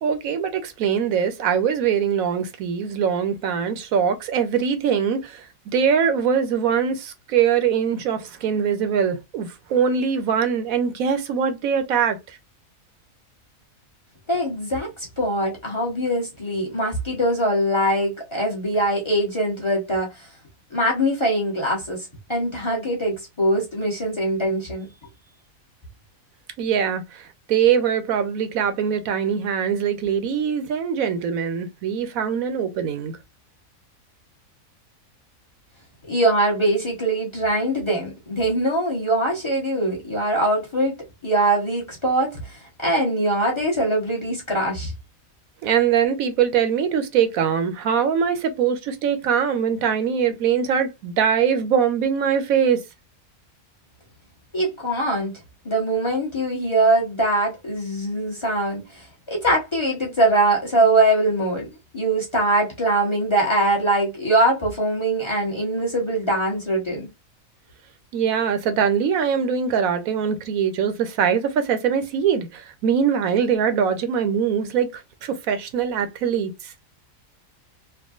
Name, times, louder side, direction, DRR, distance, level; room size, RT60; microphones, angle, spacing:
voice 1, 0.0-12.4 26.6-33.2 45.6-52.8 68.1-76.7, right 7 dB, 80° right, 1.1 m, -22 dB
voice 2, 14.3-20.3 20.7-24.9 36.1-40.9 41.2-44.9 54.5-55.4 55.6-61.7 61.9-67.1, right 1 dB, 25° left, 0.9 m, -22 dB
3.5 x 2.2 x 2.3 m
omnidirectional pair, 1.5 m